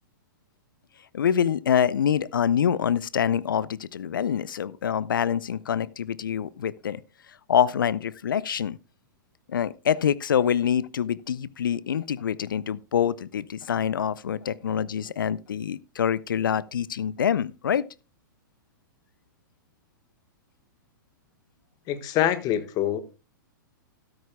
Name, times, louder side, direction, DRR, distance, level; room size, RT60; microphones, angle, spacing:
voice 1, 1.1-7.0 7.5-8.8 9.5-17.9, left 8 dB, 75° left, 0.5 m, -25 dB
voice 2, 21.9-23.0, left 11 dB, 35° left, 1.4 m, -25 dB
13.5 x 13.0 x 2.3 m
hypercardioid pair, 110°, 11 cm